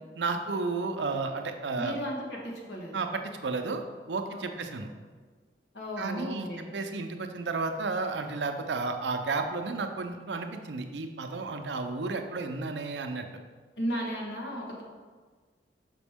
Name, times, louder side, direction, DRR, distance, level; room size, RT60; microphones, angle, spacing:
voice 1, 0.2-2.0 2.9-3.8 4.1-4.9 6.0-13.2, right 3 dB, 85° right, 5 dB, 0.6 m, -32 dB
voice 2, 1.8-3.0 4.3-4.7 5.7-6.7 13.8-14.8, equal, 70° left, -1 dB, 1.4 m, -35 dB
6.1 x 5.1 x 3.5 m, 1.5 s
head